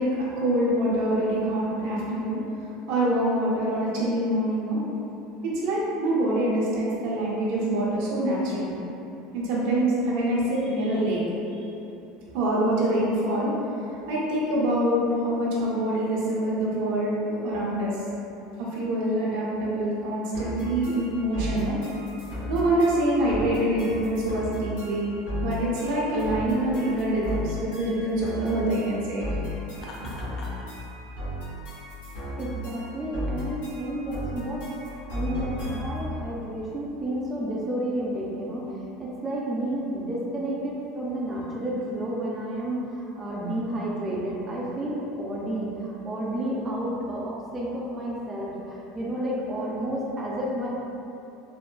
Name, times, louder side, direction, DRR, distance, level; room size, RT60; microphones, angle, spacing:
voice 1, 0.0-4.8 5.5-8.7 9.3-11.2 12.3-13.5 14.1-18.0 18.6-21.8 22.5-25.1 25.4-29.3, right 1 dB, 70° right, -6 dB, 0.7 m, -25 dB
sound 1, 20.3-36.1, equal, 85° left, 1.0 m, -35 dB
Laughter, 29.7-30.7, left 1 dB, 40° left, 0.4 m, -42 dB
voice 2, 32.3-50.7, right 1 dB, 25° right, -6 dB, 0.4 m, -31 dB
3.5 x 2.1 x 2.3 m, 2.9 s
supercardioid pair, 100°, 0 cm